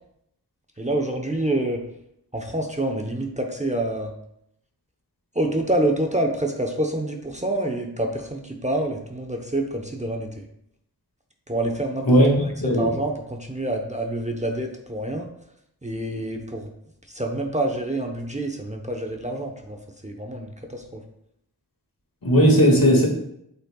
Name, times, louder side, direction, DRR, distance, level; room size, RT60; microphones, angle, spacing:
voice 1, 0.8-1.8 2.3-4.1 5.3-10.4 11.5-12.1 12.8-15.3 15.8-16.7 17.1-21.0, right 1 dB, 20° right, 2 dB, 0.9 m, -27 dB
voice 2, 22.2-23.1, equal, 60° left, -1 dB, 2.2 m, -16 dB
8.4 x 5.6 x 2.4 m, 0.76 s
cardioid pair, 40°, 39 cm